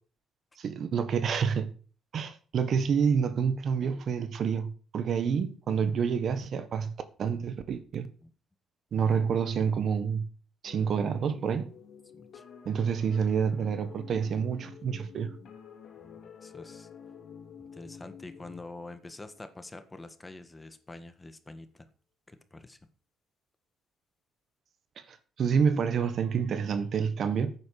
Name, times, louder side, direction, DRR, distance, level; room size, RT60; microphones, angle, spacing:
voice 1, 0.6-1.7 2.1-6.9 7.2-8.1 8.9-10.3 10.6-11.7 12.6-15.3 25.1-27.5, right 6 dB, 60° right, 1.4 m, -28 dB
sound 1, 10.6-19.9, left 7 dB, 70° left, 3.1 m, -49 dB
voice 2, 12.1-12.4 16.0-16.9 17.6-21.9 22.3-22.8, left 2 dB, 20° left, 1.6 m, -46 dB
10.5 x 9.2 x 6.5 m
cardioid pair, 90°, 0 cm